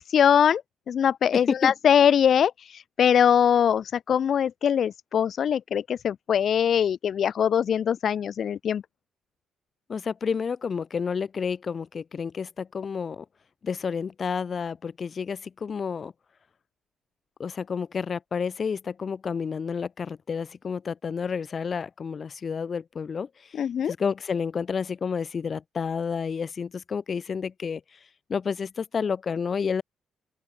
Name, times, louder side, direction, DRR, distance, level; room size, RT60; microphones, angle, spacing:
voice 1, 0.1-0.6 0.9-8.8 23.6-23.9, left 8 dB, 60° left, 0.4 m, -22 dB
voice 2, 1.3-1.7 9.9-13.2 13.6-16.1 17.4-23.3 23.8-27.8 28.3-29.8, left 6 dB, 45° left, 2.9 m, -30 dB
open air
cardioid pair, 90°, 0 cm